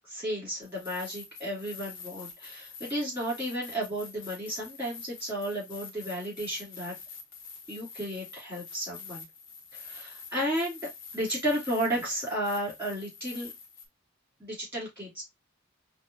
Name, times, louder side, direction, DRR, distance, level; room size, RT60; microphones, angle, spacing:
voice 1, 0.1-6.9 7.7-9.2 9.7-13.5 14.4-15.2, equal, 10° right, -4 dB, 2.7 m, -33 dB
sound 1, 0.6-13.9, left 5 dB, 65° left, 0.9 m, -46 dB
5.2 x 2.2 x 2.6 m, 0.18 s
head